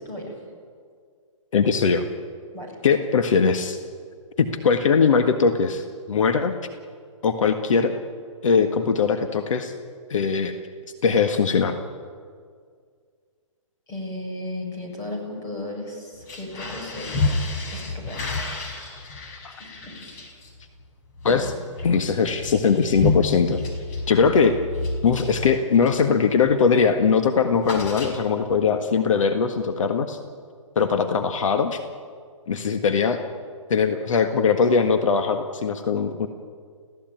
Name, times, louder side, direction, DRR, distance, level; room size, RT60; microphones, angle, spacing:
voice 1, 1.5-2.0 2.8-3.8 4.4-6.6 7.2-7.9 8.4-9.7 10.1-10.6 11.0-11.8 19.4-19.5 21.2-21.5 21.8-23.6 24.1-24.6 25.0-30.2 30.8-31.8 32.5-33.2 33.7-36.3, left 5 dB, 70° left, 6 dB, 1.7 m, -20 dB
voice 2, 13.9-17.1 17.7-18.3 19.6-19.9 21.3-21.5, left 1 dB, 20° left, 0 dB, 6.7 m, -35 dB
sound 1, 16.1-26.1 26.4-26.7 27.0-28.6, left 3 dB, 35° left, 5.0 m, -30 dB
29.0 x 16.0 x 9.3 m, 2.1 s
hypercardioid pair, 160°, 17 cm